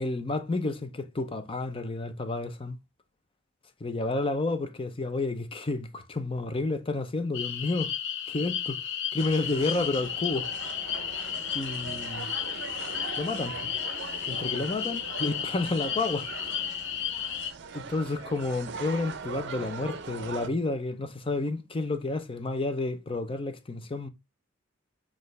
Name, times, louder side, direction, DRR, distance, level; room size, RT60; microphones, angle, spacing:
voice 1, 0.0-2.8 3.8-7.9 8.3-8.8 9.1-10.5 11.5-12.3 13.2-13.7 14.3-16.3 17.7-24.1, left 2 dB, 25° left, 0.6 m, -30 dB
sound 1, 7.3-17.5, left 9 dB, 65° left, 0.7 m, -33 dB
sound 2, 9.2-20.5, right 5 dB, 60° right, 0.6 m, -41 dB
6.6 x 2.5 x 3.2 m
head